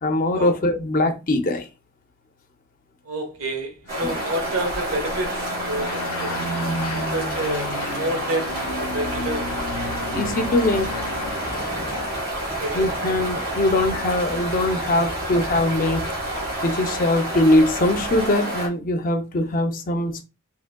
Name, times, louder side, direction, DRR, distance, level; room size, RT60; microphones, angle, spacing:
voice 1, 0.0-1.7 4.0-4.2 10.1-11.0 12.7-16.0 16.6-20.2, left 1 dB, 40° left, 0.5 m, -21 dB
voice 2, 3.0-6.4 6.9-9.6 12.4-13.2, right 1 dB, 75° right, 1.0 m, -29 dB
sound 1, 3.9-12.1, left 2 dB, 85° left, 0.5 m, -33 dB
sound 2, 3.9-18.7, right 1 dB, 40° right, 1.6 m, -29 dB
sound 3, 8.4-18.2, equal, 15° right, 1.4 m, -39 dB
3.6 x 2.9 x 2.2 m
head